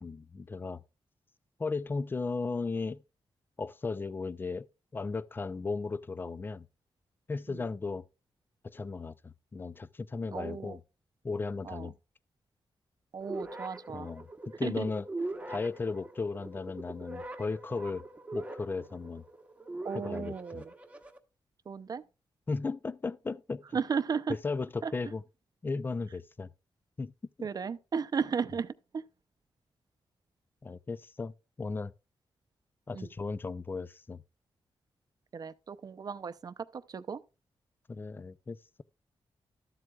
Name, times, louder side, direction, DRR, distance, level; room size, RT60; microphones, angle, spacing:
voice 1, 0.0-0.8 1.6-3.0 3.6-4.7 4.9-6.7 7.3-8.0 8.6-10.8 11.2-11.9 13.9-14.3 14.6-15.1 15.5-18.0 18.3-19.2 19.9-20.6 22.5-23.8 24.4-25.2 25.6-26.5 27.0-27.1 30.6-31.3 31.6-31.9 32.9-34.2 37.9-38.8, left 4 dB, 25° left, 0.4 m, -35 dB
voice 2, 10.3-10.8 11.6-11.9 13.1-14.1 14.6-14.9 19.8-20.7 21.7-22.0 23.7-24.3 24.8-24.9 27.4-29.0 32.9-33.1 35.3-37.2, right 6 dB, 45° right, 0.6 m, -35 dB
sound 1, 13.2-21.2, right 2 dB, 15° right, 1.0 m, -42 dB
13.0 x 7.6 x 2.3 m
wide cardioid pair, 120°, 9 cm